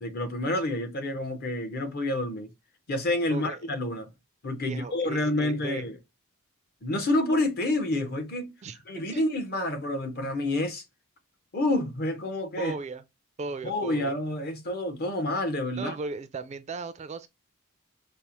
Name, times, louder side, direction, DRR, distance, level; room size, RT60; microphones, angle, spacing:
voice 1, 0.0-2.5 2.9-4.1 4.4-6.0 6.8-8.5 8.9-10.8 11.5-12.7 13.6-15.9, left 1 dB, 45° left, 0.7 m, -28 dB
voice 2, 4.6-5.8 8.6-9.2 12.6-13.0 13.4-14.1 15.7-17.3, right 4 dB, 30° right, 0.3 m, -37 dB
5.2 x 2.0 x 2.9 m
head